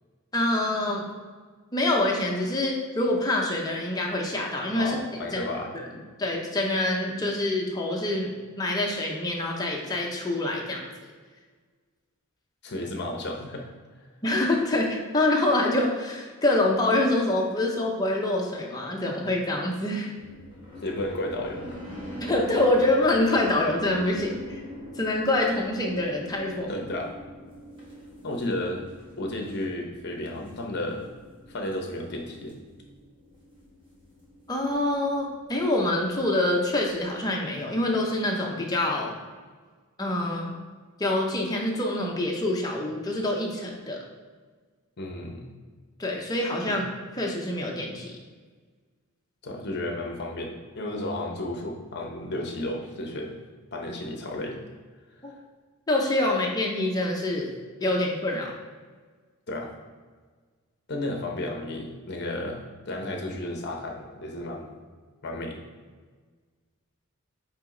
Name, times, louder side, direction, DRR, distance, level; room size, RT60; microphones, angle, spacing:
voice 1, 0.3-1.1 1.7-5.0 5.3-5.4 6.2-10.8 14.2-20.1 22.2-24.6 25.0-26.8 34.5-39.1 40.0-40.5 41.0-44.0 46.0-46.8 47.2-48.1 55.2-55.3 55.9-57.5 57.8-58.5, left 1 dB, 15° left, -1 dB, 0.8 m, -26 dB
voice 2, 4.8-5.7 12.6-13.7 20.8-21.8 26.7-27.1 28.2-28.9 29.2-31.0 31.5-32.5 45.0-45.5 46.6-46.8 49.4-53.4 53.7-54.6 59.5-59.7 60.9-64.8 65.2-65.6, left 1 dB, 50° left, 1 dB, 0.9 m, -33 dB
sound 1, 20.2-37.2, equal, 20° right, 1.5 m, -43 dB
8.0 x 3.1 x 3.8 m, 1.5 s
head